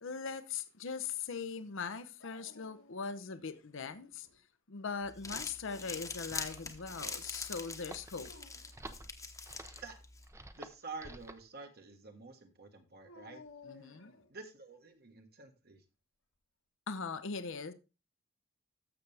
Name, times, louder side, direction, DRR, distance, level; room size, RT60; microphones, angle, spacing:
voice 1, 0.0-4.3 4.7-8.3 13.6-14.1 16.9-17.7, left 5 dB, 65° left, 0.8 m, -40 dB
Dog, 2.2-3.3 3.7-4.4 5.4-6.2 8.1-8.8 13.0-14.4, left 4 dB, 85° left, 2.1 m, -57 dB
Crumpling crinkling, 5.0-10.3, left 4 dB, 15° left, 1.1 m, -44 dB
sound 1, 6.4-11.5, right 2 dB, 15° right, 0.7 m, -52 dB
voice 2, 10.6-13.4 13.7-15.8, right 4 dB, 50° right, 1.6 m, -49 dB
13.0 x 6.9 x 3.4 m
head